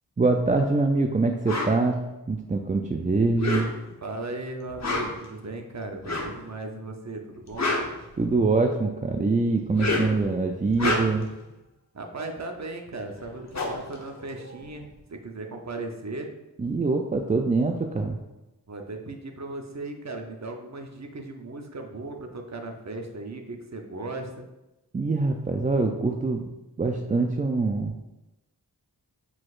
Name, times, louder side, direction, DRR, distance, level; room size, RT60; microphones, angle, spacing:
voice 1, 0.2-3.7 8.2-11.3 16.6-18.2 24.9-26.5 26.8-27.9, right 3 dB, 20° right, 3 dB, 0.3 m, -24 dB
sound 1, 1.5-1.7 3.3-4.0 4.7-5.3 6.0-6.4 7.3-8.6 9.6-10.2 10.6-11.3 12.9-13.0 13.2-14.9, left 2 dB, 45° left, 0.8 m, -29 dB
voice 2, 4.0-7.7 11.9-16.3 18.7-24.5, right 2 dB, 45° right, 4 dB, 0.7 m, -37 dB
4.7 x 4.0 x 2.4 m, 0.98 s
wide cardioid pair, 45°, 39 cm